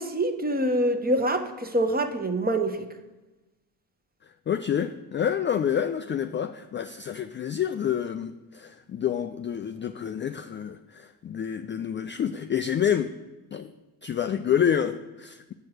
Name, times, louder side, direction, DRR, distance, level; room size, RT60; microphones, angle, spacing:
voice 1, 0.0-2.9, right 1 dB, 20° right, 7 dB, 1.0 m, -25 dB
voice 2, 4.5-13.1 13.5-13.7 14.0-15.5, left 8 dB, 30° left, 9 dB, 0.3 m, -28 dB
7.2 x 4.6 x 6.5 m, 1.1 s
hypercardioid pair, 55°, 46 cm